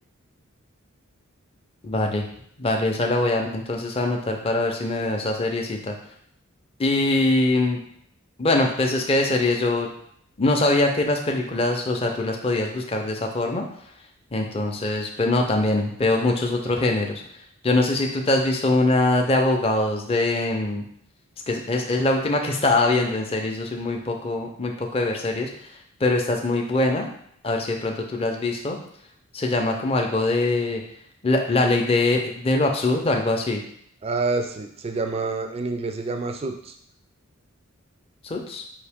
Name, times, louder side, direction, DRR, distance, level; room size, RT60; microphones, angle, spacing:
voice 1, 1.8-2.3 2.6-6.0 6.8-7.8 8.4-9.9 10.4-13.6 14.3-17.2 17.6-20.8 21.5-25.5 26.0-27.1 27.4-28.8 29.3-30.8 31.2-33.6 38.2-38.6, left 2 dB, 25° left, 1 dB, 0.5 m, -23 dB
voice 2, 34.0-36.7, right 3 dB, 30° right, 5 dB, 0.3 m, -27 dB
4.8 x 2.7 x 3.5 m, 0.67 s
head